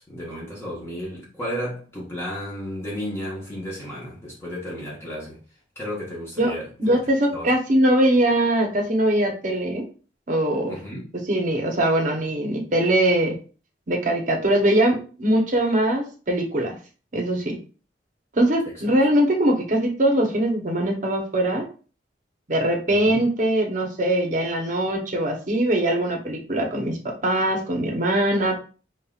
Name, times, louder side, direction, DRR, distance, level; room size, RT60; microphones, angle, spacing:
voice 1, 0.0-5.4 5.8-7.0 7.3-7.5 10.7-11.1 22.9-23.2, equal, 15° left, 1.0 m, -33 dB
voice 2, 6.8-9.8 10.3-10.8 11.1-13.3 13.9-16.8 17.1-17.6 18.3-21.7 22.5-28.6, right 1 dB, 45° right, 0.9 m, -22 dB
5.5 x 2.5 x 2.4 m
head